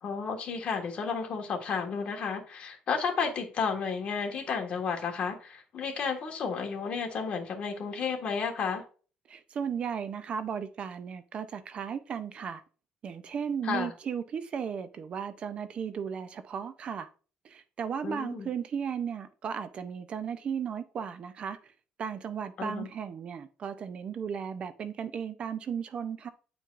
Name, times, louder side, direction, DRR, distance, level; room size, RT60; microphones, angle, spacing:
voice 1, 0.0-8.8 13.6-13.9 18.0-18.5 22.6-22.9, left 5 dB, 45° left, 1.5 m, -32 dB
voice 2, 9.3-12.6 13.0-17.1 17.4-21.7 22.0-26.3, right 7 dB, 40° right, 0.5 m, -35 dB
9.3 x 4.6 x 2.4 m
cardioid pair, 150°, 3 cm